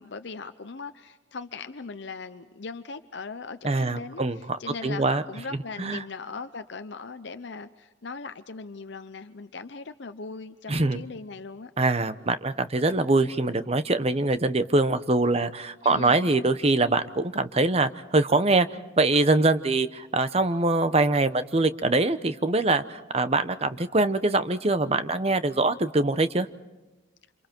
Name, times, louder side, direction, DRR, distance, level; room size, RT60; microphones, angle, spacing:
voice 1, 0.0-11.7 15.8-16.3, left 4 dB, 60° left, 10 dB, 0.7 m, -39 dB
voice 2, 3.6-4.4 4.8-5.2 5.8-6.0 10.7-11.0 11.8-18.7 19.0-26.5, right 2 dB, 30° right, 12 dB, 0.8 m, -23 dB
28.5 x 27.0 x 4.5 m, 1.1 s
head